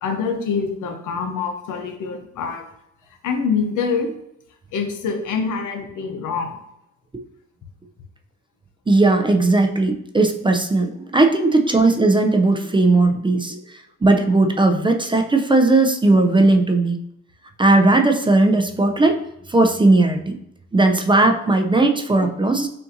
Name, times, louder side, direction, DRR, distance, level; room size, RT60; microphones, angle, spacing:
voice 1, 0.0-2.6 3.2-4.1 4.7-6.5 22.2-22.3, left 5 dB, 85° left, 5 dB, 0.7 m, -25 dB
voice 2, 8.9-13.6 14.0-17.0 17.6-19.2 19.5-20.4 20.7-22.7, right 2 dB, 15° right, 5 dB, 0.4 m, -17 dB
5.4 x 2.6 x 2.6 m, 0.76 s
cardioid pair, 85°, 30 cm